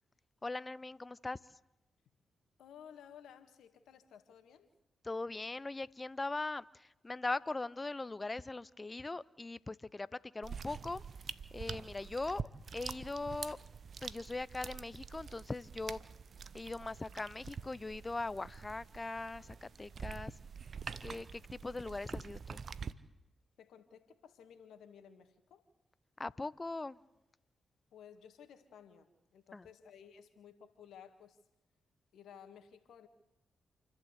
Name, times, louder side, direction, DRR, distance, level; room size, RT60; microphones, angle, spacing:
voice 1, 0.4-1.4 5.0-10.1 10.3-11.0 11.5-12.4 12.7-13.6 14.0-16.0 16.5-20.3 21.0-22.6 26.2-27.0 29.5-29.7, left 2 dB, 30° left, 0.7 m, -40 dB
voice 2, 2.6-4.7 23.6-25.6 27.9-31.4 32.1-33.1, left 8 dB, 75° left, 1.9 m, -56 dB
sound 1, 10.4-22.9, right 6 dB, 60° right, 0.9 m, -46 dB
28.5 x 12.0 x 8.2 m
hypercardioid pair, 40°, 0 cm